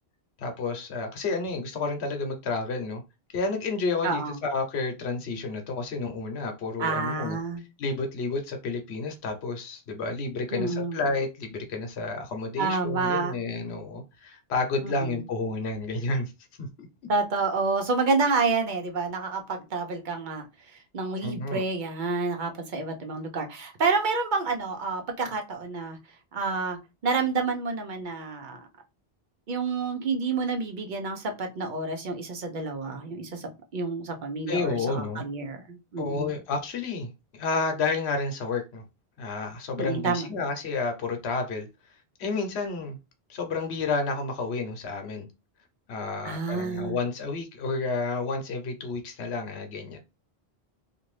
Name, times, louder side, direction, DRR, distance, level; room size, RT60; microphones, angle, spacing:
voice 1, 0.4-3.0 3.3-7.4 7.8-16.3 16.6-16.7 21.2-21.6 34.5-35.2 36.0-38.8 39.2-41.7 42.2-43.0 43.3-45.3 45.9-50.0, left 3 dB, 85° left, 1.0 m, -30 dB
voice 2, 4.0-4.4 6.8-7.6 10.5-11.0 12.6-13.4 14.8-15.2 17.1-20.4 20.9-26.0 26.3-26.8 27.0-28.6 29.5-36.3 39.8-40.3 46.2-47.0, right 4 dB, 55° right, 0.7 m, -29 dB
2.5 x 2.5 x 3.1 m
omnidirectional pair, 1.1 m